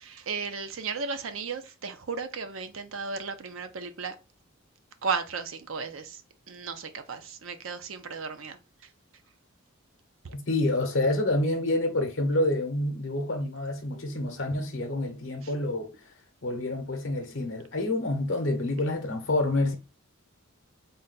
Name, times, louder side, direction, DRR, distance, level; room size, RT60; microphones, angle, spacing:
voice 1, 0.3-4.1 5.0-6.0 6.5-8.6, right 5 dB, 70° right, 0.6 m, -34 dB
voice 2, 10.3-16.1 16.4-19.8, left 2 dB, 65° left, 0.7 m, -28 dB
3.9 x 2.2 x 3.9 m
head